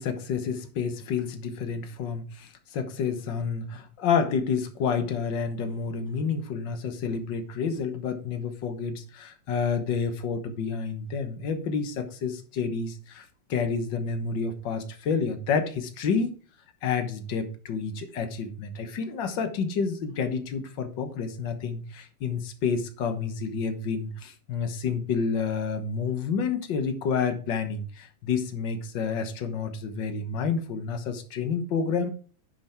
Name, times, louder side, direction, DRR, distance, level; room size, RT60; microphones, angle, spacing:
voice 1, 0.0-16.3 16.8-32.1, left 5 dB, 50° left, 7 dB, 1.4 m, -29 dB
10.5 x 5.5 x 4.6 m, 0.39 s
omnidirectional pair, 3.4 m